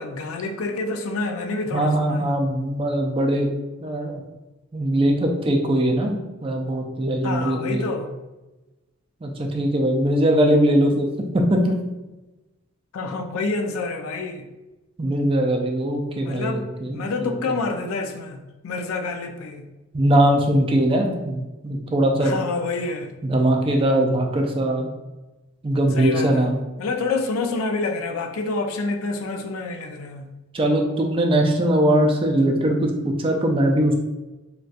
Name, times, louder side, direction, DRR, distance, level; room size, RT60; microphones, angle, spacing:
voice 1, 0.0-2.4 7.2-8.1 12.9-14.4 16.2-16.7 16.9-19.6 22.2-23.1 25.9-26.5 26.8-30.3, left 3 dB, 70° left, 5 dB, 0.4 m, -28 dB
voice 2, 1.7-3.5 3.8-4.2 4.7-7.8 9.2-11.1 11.3-11.8 15.0-17.3 19.9-22.4 23.2-24.9 25.6-26.6 30.5-33.9, right 1 dB, 25° right, 2 dB, 0.3 m, -21 dB
3.9 x 2.2 x 2.4 m, 1.1 s
head